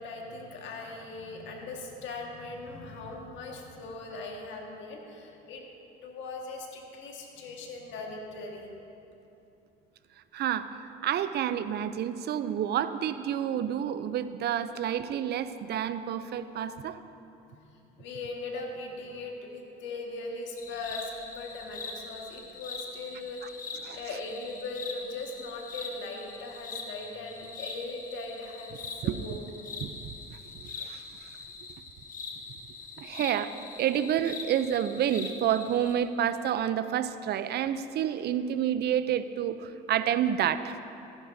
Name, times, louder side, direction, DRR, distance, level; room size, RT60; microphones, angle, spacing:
voice 1, 0.0-5.6 6.0-8.7 17.5-28.8 29.0-29.4, left 3 dB, 70° left, 1 dB, 1.7 m, -40 dB
voice 2, 10.3-17.0 23.8-24.0 29.0-29.2 29.8-31.0 33.0-40.8, right 10 dB, 55° right, 12 dB, 0.5 m, -29 dB
sound 1, 20.6-35.9, left 4 dB, 45° left, 1.3 m, -43 dB
14.5 x 10.5 x 2.7 m, 2.8 s
supercardioid pair, 75°, 20 cm